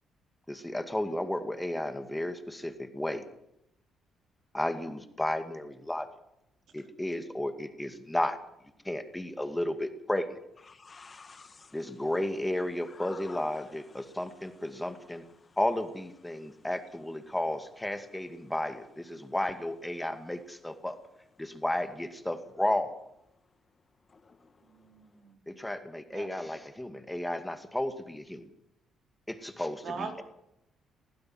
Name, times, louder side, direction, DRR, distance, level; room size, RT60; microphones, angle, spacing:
voice 1, 0.5-3.2 4.5-6.1 6.7-8.4 8.8-10.4 11.7-15.2 15.6-21.0 21.4-23.0 25.5-28.5 29.3-30.2, left 1 dB, 10° left, 2.2 m, -33 dB
voice 2, 10.7-11.8 12.8-13.6 14.0-14.2 15.4-15.6 16.3-16.5 24.1-24.7, left 4 dB, 35° left, 2.1 m, -51 dB
voice 3, 24.7-25.5 26.1-26.3 29.8-30.2, right 5 dB, 70° right, 4.6 m, -41 dB
21.5 x 15.5 x 7.8 m
cardioid pair, 90°, 0 cm